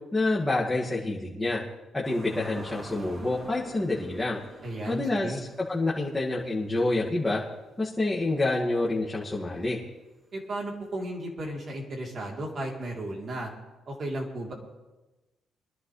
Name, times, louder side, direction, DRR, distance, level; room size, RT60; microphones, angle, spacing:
voice 1, 0.1-1.6 1.9-4.4 4.9-7.4 7.8-9.8, left 2 dB, 15° left, -6 dB, 2.3 m, -27 dB
sound 1, 2.0-7.5 7.9-8.0 11.1-11.2, right 1 dB, 30° right, 2.9 m, -47 dB
voice 2, 4.6-5.4 10.3-13.5 13.9-14.5, right 1 dB, 50° right, -1 dB, 3.6 m, -34 dB
24.5 x 11.5 x 3.4 m, 1.1 s
cardioid pair, 90°, 0 cm